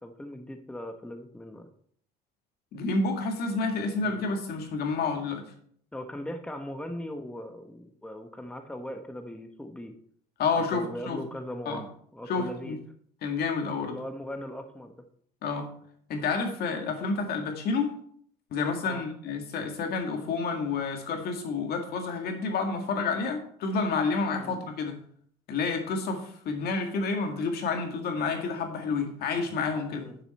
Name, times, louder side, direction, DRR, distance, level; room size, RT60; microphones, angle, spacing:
voice 1, 0.0-1.7 4.0-4.2 5.9-9.9 10.7-12.8 13.9-15.0 18.8-19.0 24.4-24.6 29.9-30.2, left 1 dB, 5° left, 5 dB, 1.1 m, -39 dB
voice 2, 2.7-5.5 10.4-11.2 11.7-11.8 12.3-12.8 13.2-14.0 15.4-15.7 16.1-17.9 18.5-25.0 25.5-30.1, left 4 dB, 70° left, 4 dB, 1.9 m, -29 dB
9.6 x 6.9 x 4.2 m, 0.62 s
cardioid pair, 110°, 17 cm